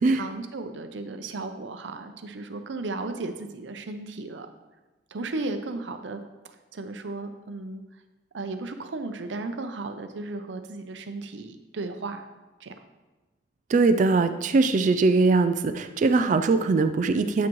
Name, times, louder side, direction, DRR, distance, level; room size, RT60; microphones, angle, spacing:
voice 1, 0.1-4.5 5.1-6.2 6.5-7.8 8.3-12.2 12.6-12.8, right 3 dB, 85° right, 8 dB, 0.6 m, -35 dB
voice 2, 13.7-17.5, right 3 dB, 45° right, 9 dB, 0.3 m, -21 dB
8.4 x 6.0 x 3.1 m, 1.2 s
head